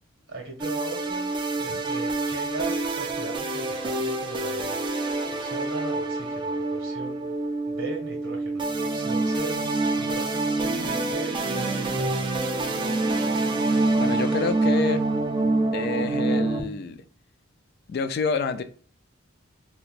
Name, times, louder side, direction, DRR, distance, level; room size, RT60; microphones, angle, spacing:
voice 1, 0.3-4.8 5.3-7.3 7.7-9.6 10.0-12.4, right 2 dB, 70° right, 1.6 m, -38 dB
sound 1, 0.6-16.6, right 2 dB, 25° right, 0.4 m, -26 dB
voice 2, 14.0-15.0 15.7-17.0 17.9-18.6, left 4 dB, 50° left, 0.3 m, -28 dB
3.3 x 2.9 x 2.4 m
head